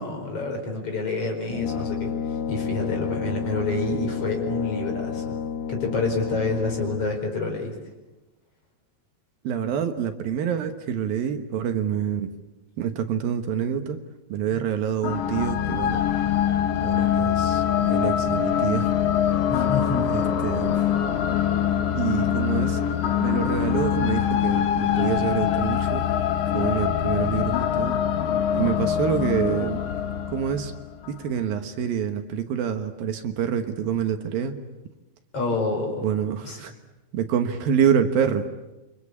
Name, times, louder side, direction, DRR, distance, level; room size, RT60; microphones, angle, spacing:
voice 1, 0.0-2.1 2.5-5.4 5.7-7.7 19.5-20.1 35.3-36.0 36.4-36.6, left 3 dB, 35° left, 2 dB, 5.5 m, -28 dB
Brass instrument, 1.5-7.2, left 7 dB, 60° left, 2.0 m, -30 dB
voice 2, 9.4-12.3 12.8-14.0 14.3-16.0 16.8-18.9 20.1-20.8 21.9-22.8 23.2-26.1 26.5-28.0 28.5-29.8 30.3-30.7 31.1-34.6 36.0-36.7 37.1-38.5, right 8 dB, 70° right, 7 dB, 3.0 m, -26 dB
sound 1, 15.0-31.2, left 9 dB, 85° left, 1.3 m, -24 dB
28.5 x 24.5 x 8.5 m, 1.1 s
omnidirectional pair, 4.5 m